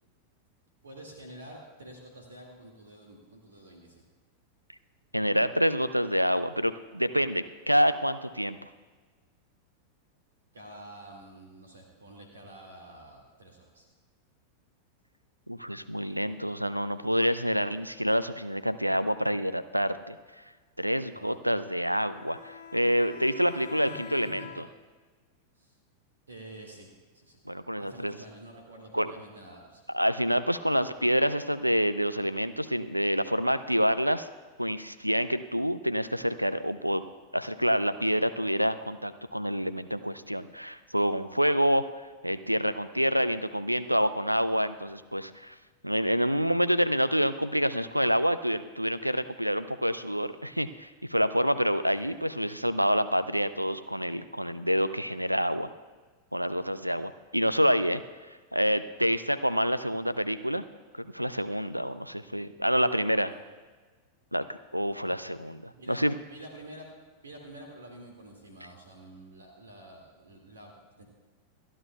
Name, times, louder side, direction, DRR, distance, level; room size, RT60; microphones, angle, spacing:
voice 1, 0.8-4.0 10.5-13.9 21.1-21.4 23.5-23.6 23.9-24.0 25.5-25.8 26.3-27.4 27.8-29.8 51.9-52.1 62.3-63.4 64.8-65.1 65.7-66.9 67.2-71.0, right 1 dB, 70° right, 1 dB, 2.1 m, -49 dB
voice 2, 5.1-8.6 15.5-20.2 20.8-24.4 27.5-28.1 28.9-29.1 29.9-34.3 34.6-37.0 37.3-41.8 42.2-45.6 45.8-55.7 56.3-58.0 58.5-60.6 61.0-63.3 64.3-66.2, equal, 90° right, 13 dB, 0.5 m, -27 dB
Bowed string instrument, 21.9-24.9, left 8 dB, 60° left, 1.2 m, -45 dB
29.0 x 11.0 x 2.3 m, 1.4 s
figure-of-eight pair, 90°, 0 cm